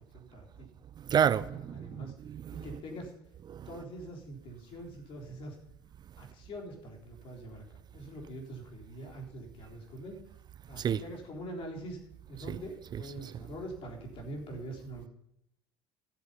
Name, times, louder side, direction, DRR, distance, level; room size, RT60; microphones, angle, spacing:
voice 1, 0.1-0.7 1.7-2.1 2.5-3.1 3.7-5.6 6.2-10.2 10.7-12.0 12.3-15.1, right 1 dB, 55° left, 3.7 m, -44 dB
voice 2, 1.1-2.8 3.5-3.8 10.8-11.0 12.5-12.6 12.9-13.3, right 8 dB, 40° right, 0.5 m, -31 dB
12.5 x 8.2 x 5.5 m
hypercardioid pair, 70°, 11 cm